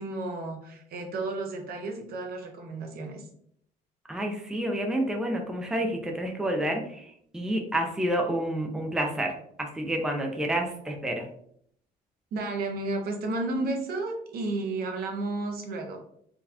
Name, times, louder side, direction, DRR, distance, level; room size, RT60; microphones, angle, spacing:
voice 1, 0.0-3.3 12.3-16.0, right 2 dB, 65° right, 3 dB, 0.8 m, -32 dB
voice 2, 4.1-11.3, right 1 dB, 5° right, 2 dB, 0.5 m, -29 dB
3.9 x 2.3 x 2.7 m, 0.67 s
cardioid pair, 110°, 17 cm